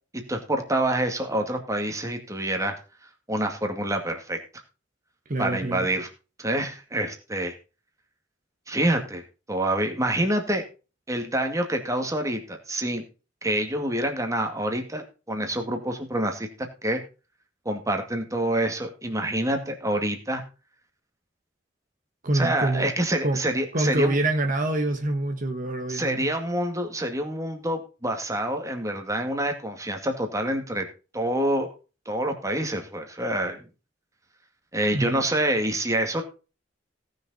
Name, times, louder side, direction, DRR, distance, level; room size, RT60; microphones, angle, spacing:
voice 1, 0.3-2.7 3.3-4.4 5.4-6.1 6.4-7.5 8.7-9.2 9.5-10.6 11.1-13.0 13.4-16.5 16.8-17.0 17.7-20.4 22.3-24.2 25.9-30.9 31.1-31.7 32.1-33.6 34.7-36.2, right 1 dB, 15° right, 2.1 m, -27 dB
voice 2, 5.3-5.9 22.2-22.9 23.2-23.4 23.7-26.3 34.9-35.3, right 2 dB, 45° right, 1.3 m, -26 dB
17.5 x 6.6 x 4.2 m
head